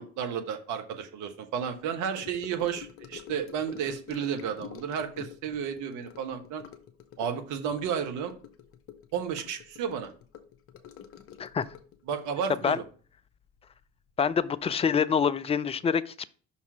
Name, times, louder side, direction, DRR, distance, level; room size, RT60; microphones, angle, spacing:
voice 1, 0.0-6.6 7.2-8.3 9.1-10.1 12.1-12.8, right 7 dB, 55° right, 1.1 m, -32 dB
Gurgling / Sink (filling or washing) / Trickle dribble, 2.2-13.8 14.1-14.4 14.7-14.8, left 9 dB, 40° left, 0.8 m, -48 dB
voice 2, 14.2-16.3, left 6 dB, 20° left, 0.3 m, -26 dB
5.7 x 4.1 x 4.7 m
figure-of-eight pair, 50°, 36 cm